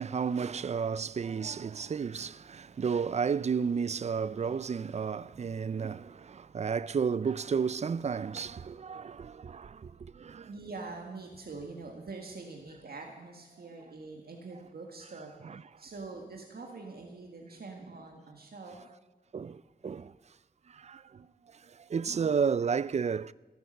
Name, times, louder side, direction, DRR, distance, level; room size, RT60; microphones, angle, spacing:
voice 1, 0.0-10.5 15.4-15.6 19.3-20.1 20.7-21.3 21.7-23.3, right 6 dB, 40° right, 0.4 m, -32 dB
voice 2, 9.8-15.3 15.8-18.9, right 3 dB, 65° right, 1.8 m, -45 dB
16.5 x 9.5 x 6.5 m
wide cardioid pair, 90°, 17 cm